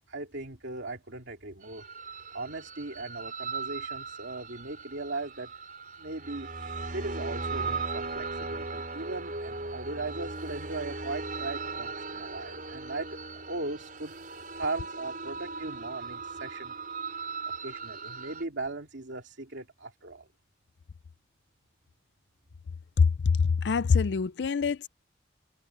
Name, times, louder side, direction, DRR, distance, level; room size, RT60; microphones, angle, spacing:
voice 1, 0.1-1.8 2.3-5.5 6.0-6.5 6.9-13.1 13.5-14.1 14.6-16.7 17.6-20.3, right 2 dB, 85° right, 2.4 m, -38 dB
sound 1, 1.6-18.4, right 3 dB, 45° right, 6.8 m, -38 dB
voice 2, 23.0-24.9, left 5 dB, 70° left, 0.4 m, -24 dB
head